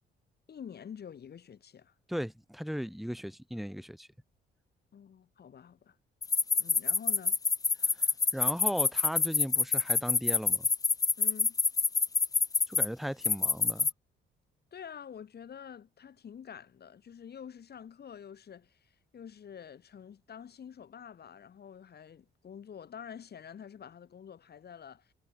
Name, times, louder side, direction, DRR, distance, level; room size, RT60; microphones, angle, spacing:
voice 1, 0.5-1.9 4.9-6.0 6.6-7.4 11.2-11.6 14.7-25.1, left 8 dB, 55° left, 7.4 m, -48 dB
voice 2, 2.1-4.1 7.8-8.0 8.3-10.7 12.7-13.9, equal, ahead, 4.9 m, -37 dB
sound 1, 6.2-12.9 13.2-13.9, left 4 dB, 20° left, 0.4 m, -26 dB
cardioid pair, 90°, 20 cm